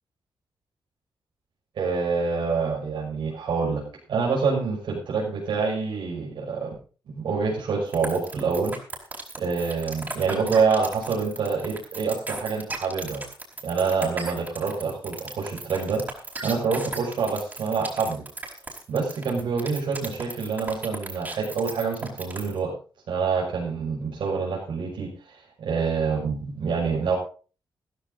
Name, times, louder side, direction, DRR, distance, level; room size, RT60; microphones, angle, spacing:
voice 1, 1.8-3.8 4.1-6.7 7.1-8.7 9.4-13.2 13.6-16.0 16.4-18.2 18.9-22.7 23.1-27.1, right 5 dB, 75° right, -4 dB, 5.9 m, -26 dB
sound 1, 7.9-22.6, right 2 dB, 20° right, 4.8 m, -36 dB
15.0 x 14.5 x 3.9 m, 0.37 s
wide cardioid pair, 125°, 8 cm